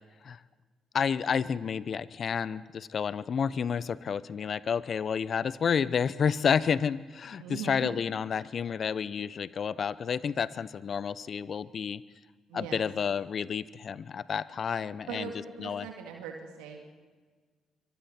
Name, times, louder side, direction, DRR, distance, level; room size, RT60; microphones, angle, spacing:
voice 1, 0.9-12.0 12.5-15.3 15.6-15.9, left 7 dB, 55° left, 18 dB, 0.8 m, -30 dB
voice 2, 7.4-7.9 12.5-12.9 15.1-16.8, right 7 dB, 85° right, 2 dB, 2.4 m, -40 dB
25.5 x 24.5 x 4.4 m, 1.5 s
hypercardioid pair, 50°, 0 cm